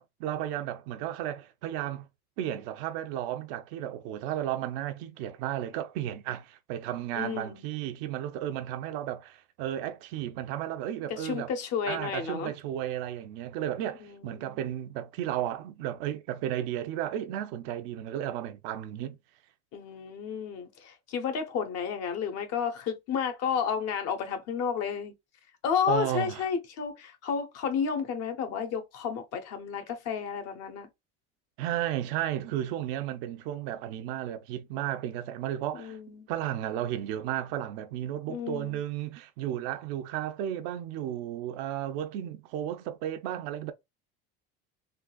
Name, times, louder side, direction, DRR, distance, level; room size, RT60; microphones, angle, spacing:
voice 1, 0.0-2.1 2.4-11.5 11.9-19.2 25.9-26.4 31.6-36.0 36.3-43.7, right 11 dB, 80° right, 0.6 m, -33 dB
voice 2, 7.1-7.6 11.1-12.5 14.0-14.6 19.7-25.1 25.6-30.9 35.7-36.3 38.3-38.8, left 7 dB, 60° left, 0.9 m, -32 dB
3.7 x 2.4 x 2.2 m
supercardioid pair, 110°, 29 cm